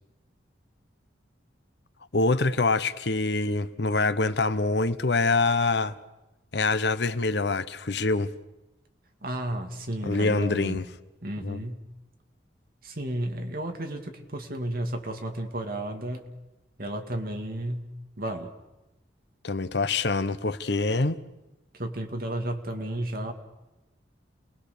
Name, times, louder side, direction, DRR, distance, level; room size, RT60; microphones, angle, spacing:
voice 1, 2.1-5.9 6.5-8.3 10.0-10.8 11.4-11.6 19.4-21.2, left 3 dB, 65° left, 0.9 m, -25 dB
voice 2, 9.2-10.8 11.2-11.8 12.8-16.2 16.8-17.8 18.2-18.5 21.7-23.3, right 1 dB, 50° right, 2.3 m, -33 dB
28.5 x 20.5 x 6.8 m
head